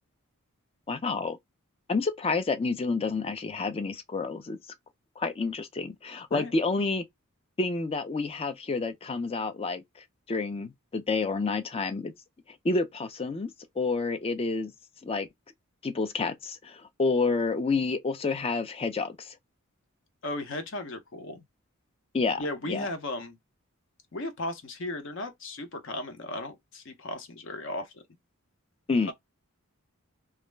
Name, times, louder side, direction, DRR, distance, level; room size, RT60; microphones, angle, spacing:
voice 1, 0.9-1.4 1.9-4.6 5.2-7.0 7.6-9.8 10.3-12.1 12.6-13.5 13.8-14.7 15.0-15.3 15.8-19.3 22.1-22.4 22.7-22.9 28.9-29.1, left 3 dB, 25° left, 0.3 m, -29 dB
voice 2, 20.2-21.4 22.4-23.4 24.1-28.0 29.1-29.2, left 2 dB, 55° left, 0.7 m, -36 dB
2.3 x 2.0 x 3.2 m
head